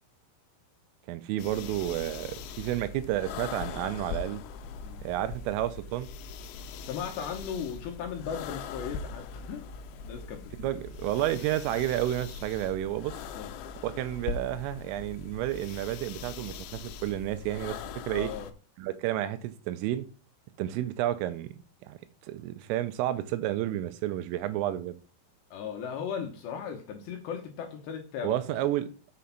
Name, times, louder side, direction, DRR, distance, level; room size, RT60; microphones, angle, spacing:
voice 1, 1.1-4.4 5.0-6.1 10.6-13.2 13.8-17.8 18.1-18.3 18.8-20.1 20.6-21.5 21.8-25.0 28.2-28.9, right 13 dB, 85° right, 3.2 m, -31 dB
sound 1, 1.4-18.5, left 6 dB, 90° left, 3.4 m, -41 dB
voice 2, 6.8-9.7 10.0-10.5 13.3-13.6 18.1-18.5 25.5-28.5, left 7 dB, 75° left, 2.7 m, -37 dB
6.8 x 6.3 x 5.7 m
omnidirectional pair, 5.9 m